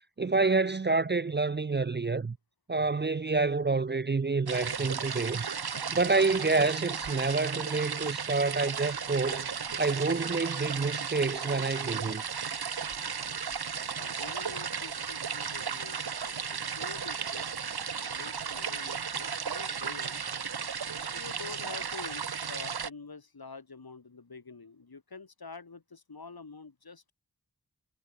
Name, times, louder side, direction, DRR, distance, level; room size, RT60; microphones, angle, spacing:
voice 1, 0.2-2.4 2.7-5.4 5.9-9.5 9.8-12.2, right 3 dB, 30° right, 0.6 m, -28 dB
sound 1, 4.5-22.9, right 6 dB, 75° right, 1.5 m, -35 dB
voice 2, 14.0-17.5 18.1-20.2 21.1-27.1, left 4 dB, 70° left, 7.9 m, -47 dB
wide cardioid pair, 50°, 38 cm